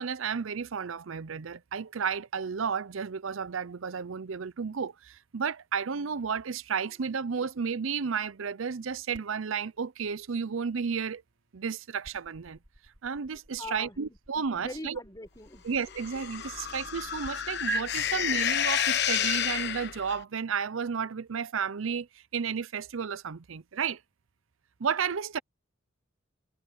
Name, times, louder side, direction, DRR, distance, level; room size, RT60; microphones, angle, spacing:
voice 1, 0.0-11.2 11.5-12.6 13.0-15.0 15.6-24.0 24.8-25.4, right 6 dB, 75° right, 0.6 m, -32 dB
sound 1, 9.1-17.3 17.7-17.8, right 5 dB, 60° right, 6.1 m, -45 dB
voice 2, 13.6-14.2 14.5-15.7, left 2 dB, 20° left, 4.6 m, -42 dB
sound 2, 15.9-20.2, left 9 dB, 55° left, 1.2 m, -30 dB
head